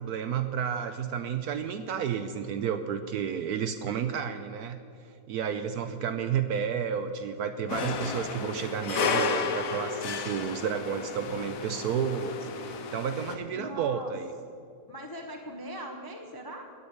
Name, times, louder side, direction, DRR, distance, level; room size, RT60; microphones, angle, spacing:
voice 1, 0.0-4.8 5.3-14.3, right 7 dB, 70° right, 9 dB, 0.9 m, -31 dB
voice 2, 6.0-6.6 13.5-14.1 14.9-16.6, equal, 25° left, 3 dB, 0.4 m, -41 dB
sound 1, 7.7-13.4, left 5 dB, 60° left, 1.0 m, -32 dB
9.5 x 8.7 x 8.2 m, 2.5 s
omnidirectional pair, 2.0 m